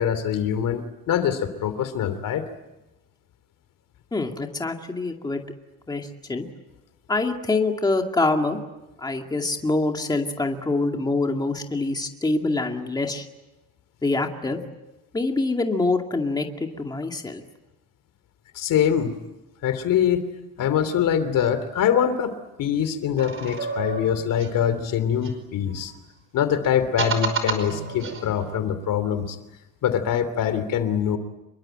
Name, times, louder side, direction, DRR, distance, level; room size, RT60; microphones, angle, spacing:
voice 1, 0.0-2.4 18.5-19.1 19.6-20.3 20.6-22.3 22.6-25.9 26.3-29.4 29.8-31.2, left 9 dB, 65° left, 11 dB, 3.0 m, -23 dB
voice 2, 4.1-5.4 5.9-6.5 7.1-8.6 9.0-13.3 14.0-14.6 15.1-17.4, left 3 dB, 10° left, 3 dB, 2.3 m, -25 dB
sound 1, 23.2-25.9 26.6-28.6, right 4 dB, 35° right, 5.0 m, -31 dB
27.5 x 23.0 x 9.0 m, 1.0 s
cardioid pair, 175°, 35 cm